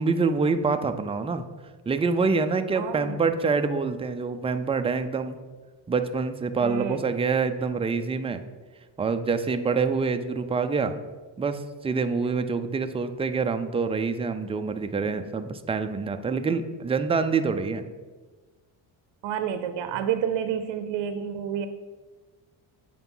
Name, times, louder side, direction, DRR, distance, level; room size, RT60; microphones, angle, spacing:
voice 1, 0.0-1.4 1.9-5.4 5.9-8.4 9.0-11.0 11.4-17.9, right 4 dB, 15° right, 8 dB, 0.3 m, -26 dB
voice 2, 2.8-3.2 6.6-7.0 19.2-21.7, right 8 dB, 60° right, 10 dB, 0.7 m, -29 dB
8.1 x 4.8 x 5.5 m, 1.3 s
cardioid pair, 105°, 49 cm